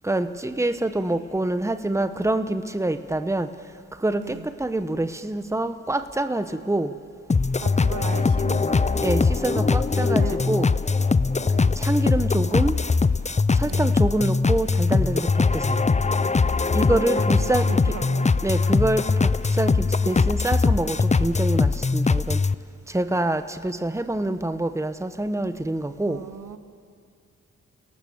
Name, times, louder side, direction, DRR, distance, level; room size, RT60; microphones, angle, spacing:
voice 1, 0.0-3.5 4.0-6.9 9.0-10.7 11.8-12.7 13.5-15.8 16.7-17.7 18.4-22.4 22.9-26.2, right 2 dB, 10° right, 10 dB, 1.1 m, -26 dB
voice 2, 4.1-4.5 7.6-9.0 10.1-10.8 11.3-11.8 13.6-14.0 17.1-18.3 26.0-26.6, right 7 dB, 70° right, 10 dB, 1.2 m, -37 dB
sound 1, 7.3-22.5, left 4 dB, 20° left, 0.6 m, -21 dB
29.0 x 18.0 x 7.3 m, 2.4 s
cardioid pair, 55°, 32 cm